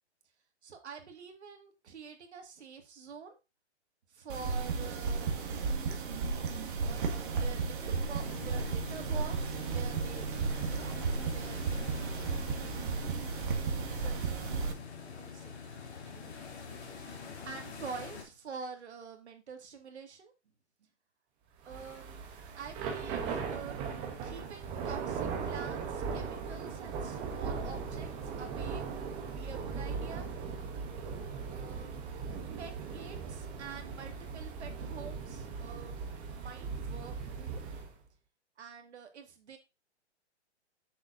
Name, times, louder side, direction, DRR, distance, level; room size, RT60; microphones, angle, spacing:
voice 1, 0.6-3.4 4.1-6.0 6.8-10.3 10.7-11.6 13.8-14.5 15.0-15.6 16.0-17.0 17.5-20.3 21.7-22.3 22.6-23.8 24.2-28.1 28.4-30.3 31.5-32.1 32.6-36.0 36.3-37.6 38.6-39.6, right 6 dB, 70° right, 4 dB, 2.1 m, -47 dB
sound 1, 4.3-14.7, right 4 dB, 45° right, 1.5 m, -34 dB
sound 2, 8.2-18.2, left 5 dB, 70° left, 3.0 m, -45 dB
Thunder / Rain, 21.6-37.9, right 5 dB, 15° right, 0.8 m, -38 dB
7.2 x 6.3 x 2.6 m, 0.26 s
hypercardioid pair, 160°, 34 cm